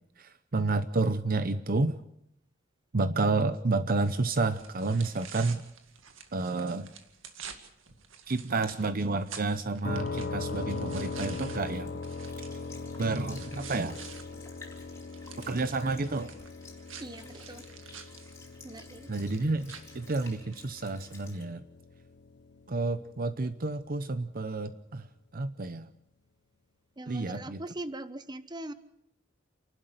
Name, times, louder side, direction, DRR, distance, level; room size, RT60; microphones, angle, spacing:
voice 1, 0.2-1.9 2.9-5.6 6.3-6.9 8.3-11.9 13.0-14.0 15.5-16.3 19.1-21.6 22.7-25.0 25.3-25.9 27.1-27.6, right 3 dB, 45° right, 11 dB, 0.7 m, -30 dB
sound 1, 4.0-14.2 14.6-20.6, right 7 dB, 70° right, 2.1 m, -49 dB
sound 2, 9.8-23.5, left 3 dB, 55° left, 0.9 m, -40 dB
Sink (filling or washing) / Liquid, 11.5-21.4, left 3 dB, 15° left, 4.2 m, -54 dB
voice 2, 17.0-17.9 18.6-19.1 27.0-28.7, right 1 dB, 20° right, 12 dB, 1.1 m, -41 dB
29.0 x 12.0 x 8.0 m, 0.79 s
head